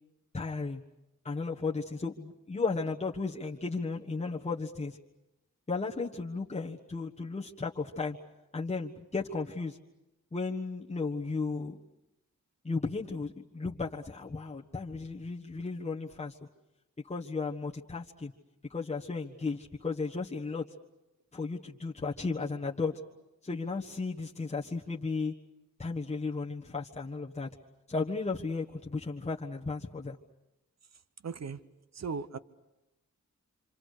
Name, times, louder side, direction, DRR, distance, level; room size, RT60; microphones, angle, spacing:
voice 1, 0.3-0.8 1.2-5.0 5.7-8.2 8.5-9.8 10.3-11.8 12.6-16.4 17.0-18.3 18.7-20.6 21.3-22.9 23.4-25.3 25.8-27.5 27.9-30.2, left 4 dB, 20° left, -4 dB, 1.4 m, -34 dB
voice 2, 31.2-31.6 31.9-32.4, right 5 dB, 60° right, 13 dB, 1.0 m, -37 dB
27.0 x 26.5 x 6.7 m, 0.97 s
wide cardioid pair, 100°, 30 cm